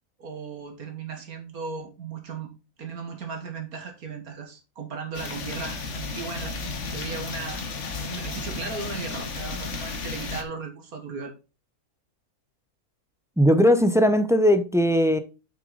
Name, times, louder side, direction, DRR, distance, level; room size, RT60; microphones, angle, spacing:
voice 1, 0.2-2.5 2.8-6.6 6.9-7.6 8.0-11.3, right 5 dB, 75° right, 2.0 m, -36 dB
sound 1, 5.1-10.4, left 4 dB, 55° left, 1.5 m, -33 dB
voice 2, 13.4-15.2, equal, 5° right, 0.4 m, -19 dB
7.5 x 6.3 x 3.9 m
omnidirectional pair, 1.5 m